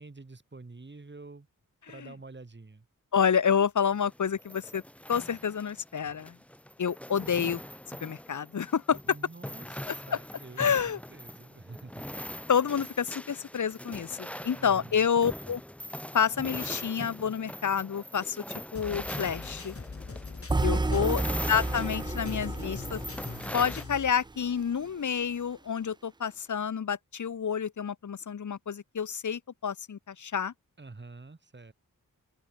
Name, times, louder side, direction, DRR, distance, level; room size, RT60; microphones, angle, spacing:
voice 1, 0.0-1.5 1.9-2.9 9.0-10.8 11.1-12.3 14.6-15.1 20.8-21.3 30.8-31.7, right 3 dB, 35° right, 7.9 m, -47 dB
voice 2, 3.1-4.8 5.1-6.4 6.8-7.6 8.0-9.0 10.1-10.2 10.6-11.0 12.5-15.6 16.1-19.8 20.6-21.2 21.5-23.0 23.5-30.5, left 7 dB, 60° left, 1.1 m, -29 dB
sound 1, 3.9-23.8, equal, 5° left, 1.4 m, -41 dB
sound 2, 18.8-24.1, left 4 dB, 40° left, 6.3 m, -41 dB
sound 3, 20.5-24.6, right 3 dB, 15° right, 0.3 m, -32 dB
open air
wide cardioid pair, 125°, 33 cm